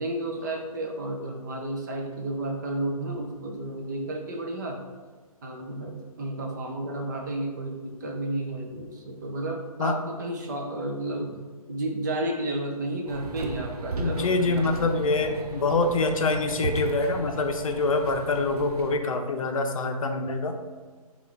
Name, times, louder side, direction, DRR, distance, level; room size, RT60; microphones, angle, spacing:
voice 1, 0.0-4.8 5.4-11.4 11.7-15.1, right 1 dB, 30° right, 1 dB, 0.5 m, -32 dB
sound 1, 13.1-19.0, right 3 dB, 90° right, 0.5 m, -36 dB
voice 2, 14.0-20.6, left 3 dB, 65° left, 5 dB, 0.6 m, -25 dB
5.4 x 2.5 x 3.2 m, 1.4 s
hypercardioid pair, 150°, 19 cm